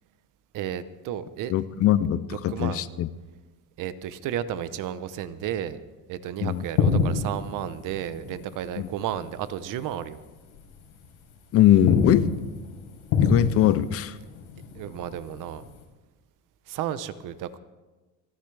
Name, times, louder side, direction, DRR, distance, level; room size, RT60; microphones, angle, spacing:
voice 1, 0.5-1.5 2.3-2.8 3.8-5.8 6.1-10.2 14.7-15.6 16.7-17.6, right 10 dB, 50° right, 14 dB, 0.8 m, -32 dB
voice 2, 1.5-3.1 6.4-6.6 8.8-8.9 11.5-12.3 13.2-14.2, left 12 dB, 40° left, 16 dB, 0.4 m, -21 dB
sound 1, 6.5-9.5 9.8-10.0 10.5-11.3 11.6-15.8, left 5 dB, 90° left, 4.1 m, -28 dB
28.0 x 10.5 x 3.3 m, 1.2 s
cardioid pair, 160°, 40 cm